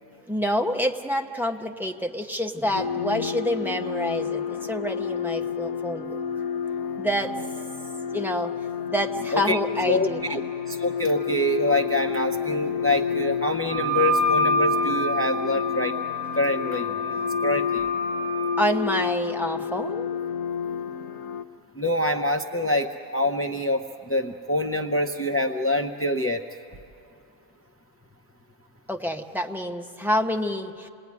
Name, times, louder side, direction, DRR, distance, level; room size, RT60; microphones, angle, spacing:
voice 1, 0.3-6.2 7.0-7.3 8.1-8.5 8.9-10.4 18.6-20.1 28.9-30.9, equal, ahead, 3 dB, 0.8 m, -27 dB
sound 1, 2.7-21.4, left 7 dB, 80° left, 1.3 m, -30 dB
voice 2, 9.9-10.4 10.7-15.9 16.4-17.9 21.8-26.4, left 1 dB, 20° left, 2 dB, 0.3 m, -25 dB
Wind instrument woodwind instrument, 13.7-18.6, equal, 60° left, 7.3 m, -27 dB
27.5 x 20.5 x 9.5 m, 2.6 s
omnidirectional pair, 1.4 m